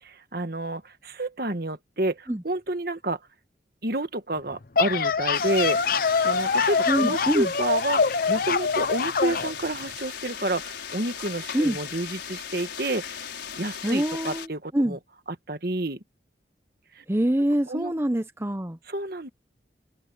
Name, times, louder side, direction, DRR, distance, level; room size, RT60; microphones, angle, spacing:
voice 1, 0.0-3.2 3.8-13.3 13.6-15.0 15.5-16.0 17.0-17.1 17.7-17.9 18.9-19.3, right 2 dB, 55° right, 1.8 m, -30 dB
sound 1, 4.5-9.5, left 5 dB, 55° left, 0.7 m, -24 dB
sound 2, 5.3-14.5, left 8 dB, 85° left, 5.2 m, -37 dB
voice 2, 6.9-7.5 11.5-11.8 13.8-15.0 17.1-18.8, right 1 dB, 15° right, 0.7 m, -25 dB
head